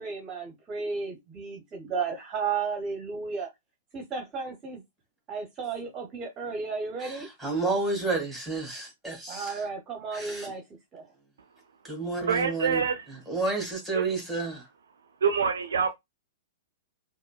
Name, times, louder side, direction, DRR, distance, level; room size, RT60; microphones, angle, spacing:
voice 1, 0.0-3.5 3.9-4.8 5.3-7.3 9.3-10.6 10.9-11.1, right 5 dB, 25° right, 1.0 m, -33 dB
voice 2, 7.0-9.6 10.1-10.5 11.8-14.7, right 3 dB, ahead, 1.9 m, -31 dB
voice 3, 12.3-13.0 13.9-14.1 15.2-15.9, right 6 dB, 70° right, 0.5 m, -26 dB
4.7 x 2.2 x 2.3 m
figure-of-eight pair, 105°, 0 cm